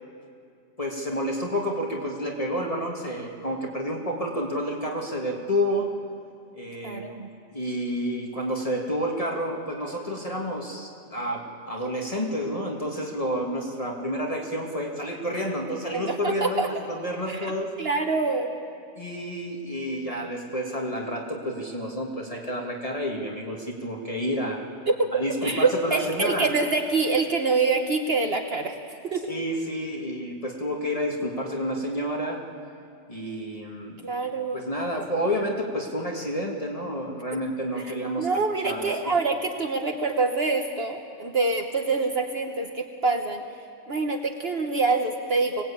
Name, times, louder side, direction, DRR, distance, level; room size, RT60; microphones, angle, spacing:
voice 1, 0.8-5.9 6.5-7.1 7.5-17.7 18.9-24.6 25.1-26.5 29.3-32.4 33.1-34.1 34.5-38.3 38.6-39.2, equal, 30° left, -1 dB, 2.1 m, -30 dB
voice 2, 6.8-7.3 15.9-16.7 17.3-17.5 17.8-18.5 24.9-28.8 29.1-29.2 34.0-34.6 37.8-43.4 43.9-45.6, right 3 dB, 55° right, 4 dB, 1.3 m, -25 dB
24.5 x 18.5 x 8.6 m, 2.4 s
omnidirectional pair, 1.3 m